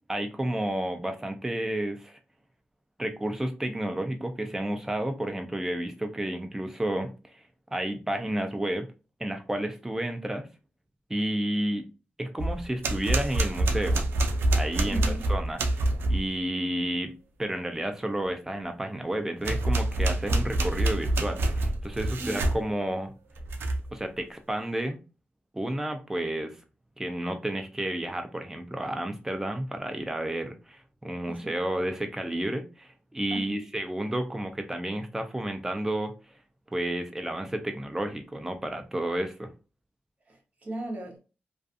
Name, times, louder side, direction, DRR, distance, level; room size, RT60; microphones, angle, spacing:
voice 1, 0.1-2.2 3.0-7.4 7.7-8.9 9.2-10.5 11.1-11.8 12.2-14.1 14.5-15.0 15.3-15.6 16.1-17.1 17.4-23.1 23.9-25.0 25.5-26.6 27.0-36.1 36.7-39.5, right 1 dB, 10° right, 0.5 m, -31 dB
sound 1, 12.4-16.3 19.4-22.6 23.4-23.9, right 1 dB, 85° right, 0.4 m, -26 dB
voice 2, 14.9-15.3 22.2-22.4 31.3-31.9 33.3-33.6 40.3-41.2, right 1 dB, 40° right, 1.0 m, -37 dB
2.5 x 2.5 x 2.4 m
wide cardioid pair, 115°, 4 cm